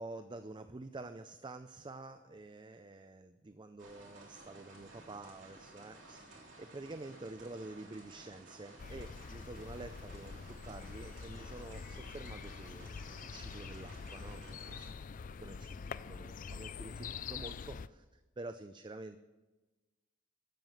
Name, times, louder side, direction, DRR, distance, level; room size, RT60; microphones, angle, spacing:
voice 1, 0.0-14.9 15.4-15.8 16.1-19.2, right 2 dB, 25° right, 9 dB, 0.5 m, -48 dB
sound 1, 3.8-14.9, right 2 dB, 65° right, 3.2 m, -55 dB
sound 2, 8.8-17.9, left 5 dB, 45° left, 0.4 m, -45 dB
12.5 x 7.5 x 7.7 m, 1.2 s
head